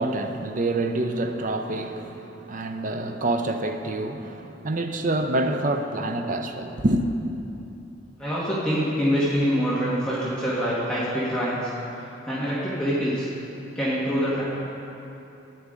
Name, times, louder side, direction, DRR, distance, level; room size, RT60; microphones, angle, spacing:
voice 1, 0.0-7.1, right 2 dB, 40° right, 6 dB, 0.6 m, -27 dB
voice 2, 8.2-11.7 12.3-13.3 13.7-14.4, equal, 5° left, -10 dB, 1.5 m, -25 dB
13.5 x 9.4 x 3.8 m, 2.9 s
head